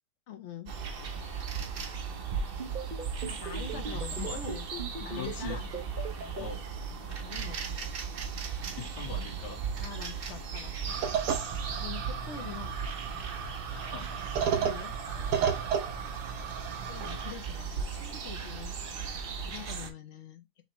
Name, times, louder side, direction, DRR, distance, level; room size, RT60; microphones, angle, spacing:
voice 1, 0.3-0.8 3.3-4.7 5.0-5.7 7.2-7.8 9.8-11.0 11.8-12.7 14.4-15.2 16.9-18.8 19.4-20.5, left 8 dB, 55° left, 0.9 m, -44 dB
sound 1, 0.7-19.9, right 6 dB, 50° right, 0.7 m, -37 dB
sound 2, 2.6-6.4, right 3 dB, 35° right, 1.1 m, -38 dB
voice 2, 3.7-4.5 5.1-5.6 6.3-6.7 8.7-9.7 13.7-14.2, left 6 dB, 90° left, 1.9 m, -42 dB
sound 3, 10.9-17.3, right 7 dB, 75° right, 1.3 m, -33 dB
5.9 x 2.9 x 3.0 m
omnidirectional pair, 1.8 m